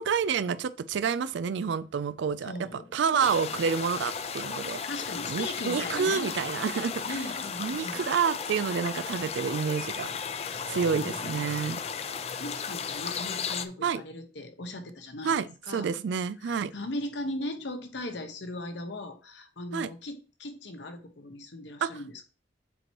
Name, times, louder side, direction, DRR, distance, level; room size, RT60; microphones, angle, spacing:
voice 1, 0.0-4.8 5.3-7.2 7.6-10.2 10.7-11.8 13.8-14.0 15.2-16.7 19.7-19.9 21.8-21.9, right 6 dB, 80° right, 0.4 m, -29 dB
voice 2, 2.4-2.9 3.1-3.6 4.9-6.3 7.0-8.0 10.5-11.8 12.2-15.4 15.7-15.9 16.4-22.2, left 1 dB, 75° left, 1.1 m, -38 dB
sound 1, 3.2-13.6, left 6 dB, 35° left, 0.4 m, -35 dB
7.7 x 3.0 x 4.6 m
head